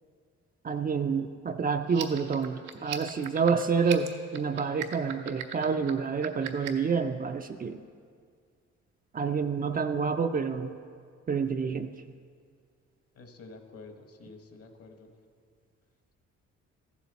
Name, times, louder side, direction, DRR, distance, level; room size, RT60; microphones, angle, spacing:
voice 1, 0.6-7.8 9.1-10.7 11.3-11.9, right 5 dB, 30° right, 7 dB, 0.4 m, -28 dB
sound 1, 1.8-6.9, right 10 dB, 90° right, 0.8 m, -39 dB
voice 2, 13.1-15.1, left 3 dB, 50° left, 5 dB, 1.2 m, -49 dB
14.5 x 7.2 x 4.1 m, 2.1 s
cardioid pair, 90°, 30 cm